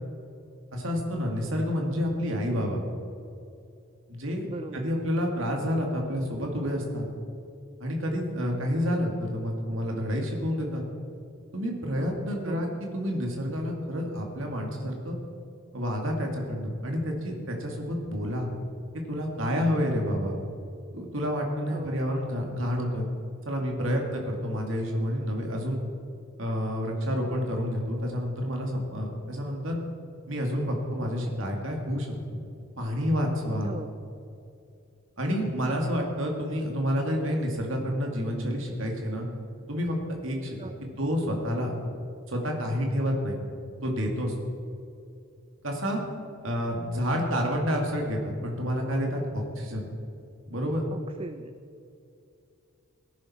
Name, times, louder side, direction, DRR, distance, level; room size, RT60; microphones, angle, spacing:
voice 1, 0.7-2.8 4.1-4.5 4.7-7.1 7.8-10.8 11.5-15.2 15.7-18.5 18.9-20.4 20.9-23.1 23.5-25.8 26.4-29.8 30.3-32.1 32.8-33.7 35.2-39.3 39.7-40.0 40.2-40.7 41.0-41.7 42.3-43.4 43.8-44.3 45.6-46.0 46.4-49.9 50.5-50.8, equal, 65° right, 1 dB, 2.2 m, -29 dB
voice 2, 4.4-4.9 12.3-12.7 21.7-22.0 33.5-33.9 36.5-36.6 40.6-41.0 50.9-51.5, right 2 dB, 25° right, 10 dB, 0.3 m, -40 dB
17.5 x 10.5 x 4.3 m, 2.6 s
head